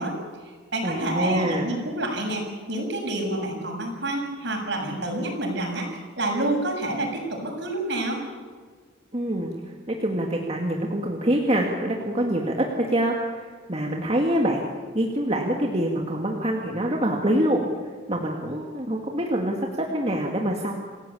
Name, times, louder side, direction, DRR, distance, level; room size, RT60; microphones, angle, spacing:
voice 1, 0.0-5.9 6.2-8.2, right 1 dB, 60° right, 2 dB, 6.9 m, -28 dB
voice 2, 0.8-1.7 9.1-9.5 9.9-14.6 14.9-17.7 18.1-20.7, right 1 dB, 30° right, 0 dB, 2.2 m, -25 dB
27.5 x 17.5 x 8.6 m, 1.5 s
head